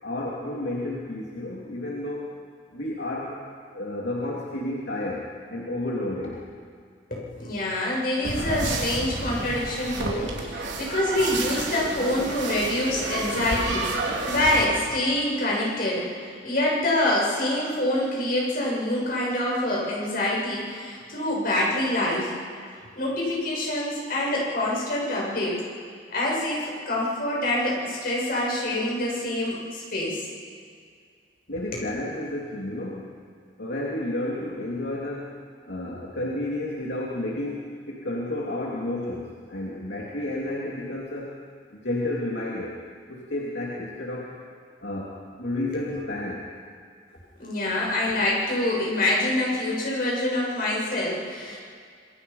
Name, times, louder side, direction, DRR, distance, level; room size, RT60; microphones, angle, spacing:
voice 1, 0.0-2.4 2.7-3.4 3.7-6.5 10.6-10.8 13.1-13.3 31.5-33.1 33.6-35.3 35.6-41.4 41.7-42.8 43.1-44.3 44.8-46.5, left 1 dB, 75° left, -4 dB, 2.7 m, -31 dB
voice 2, 7.1-16.1 16.4-22.3 23.0-25.6 26.1-30.2 47.4-51.6, left 1 dB, 55° left, -4 dB, 7.1 m, -26 dB
sound 1, 8.2-14.7, right 2 dB, 80° right, 3.6 m, -30 dB
27.0 x 22.0 x 5.6 m, 2.1 s
head